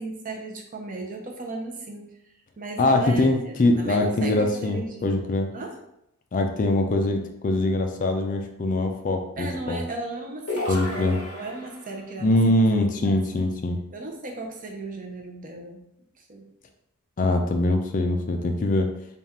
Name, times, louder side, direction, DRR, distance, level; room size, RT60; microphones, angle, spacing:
voice 1, 0.0-2.1 2.6-5.8 9.4-12.7 13.0-13.2 13.9-15.9 16.2-16.5, right 2 dB, 35° right, 2 dB, 0.6 m, -36 dB
voice 2, 2.8-5.5 6.3-9.8 10.7-11.2 12.2-13.8 17.2-18.9, left 2 dB, 35° left, 4 dB, 0.4 m, -23 dB
sound 1, 10.5-12.0, left 2 dB, 50° left, 1.1 m, -32 dB
3.5 x 2.4 x 4.2 m, 0.81 s
head